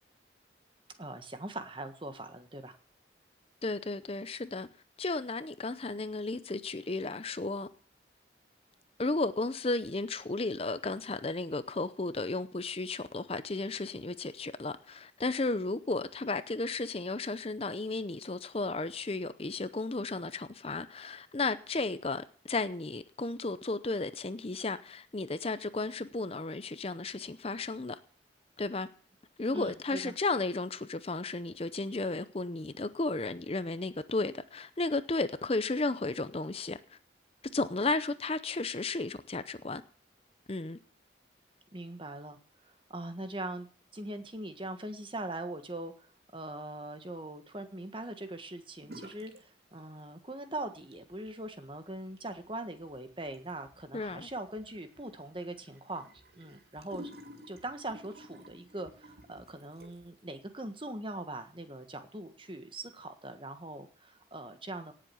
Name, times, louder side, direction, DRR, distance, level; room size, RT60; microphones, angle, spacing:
voice 1, 1.0-2.7 29.5-30.1 41.7-42.4 42.6-43.7 43.9-56.1 56.4-57.1 57.5-64.9, right 1 dB, 25° right, 1.5 m, -41 dB
voice 2, 3.6-4.7 5.0-7.7 9.0-28.0 28.6-28.9 29.4-37.0 37.5-39.8 40.5-40.8 53.9-54.3, left 3 dB, 30° left, 0.6 m, -34 dB
sound 1, 48.8-49.4 49.7-50.4 50.7-60.2, equal, 55° right, 2.4 m, -53 dB
18.0 x 7.6 x 7.0 m
head